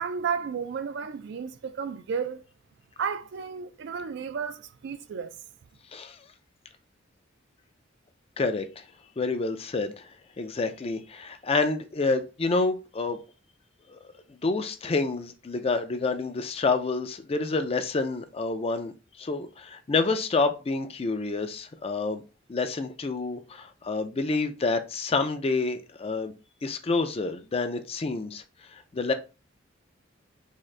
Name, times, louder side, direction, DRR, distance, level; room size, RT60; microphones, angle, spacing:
voice 1, 0.0-2.4 3.0-5.3, right 6 dB, 60° right, 0.4 m, -32 dB
voice 2, 8.4-8.8 9.2-10.1 10.4-13.2 13.9-22.2 22.5-26.3 26.6-28.4 28.7-29.1, left 3 dB, 30° left, 0.4 m, -28 dB
3.7 x 2.6 x 3.2 m
head